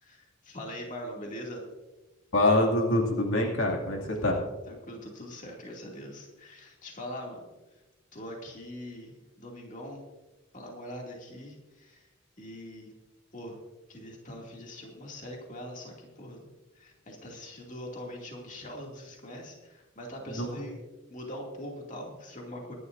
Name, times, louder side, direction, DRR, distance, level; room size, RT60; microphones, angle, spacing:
voice 1, 0.0-1.7 4.7-7.5 8.1-10.0 10.5-12.0 12.4-12.9 13.3-13.6 13.9-16.5 16.8-20.8 21.1-22.7, equal, 40° left, -1 dB, 2.5 m, -42 dB
voice 2, 2.3-4.4 20.3-20.6, left 1 dB, 70° left, 0 dB, 2.3 m, -25 dB
24.0 x 11.5 x 2.6 m, 1.1 s
head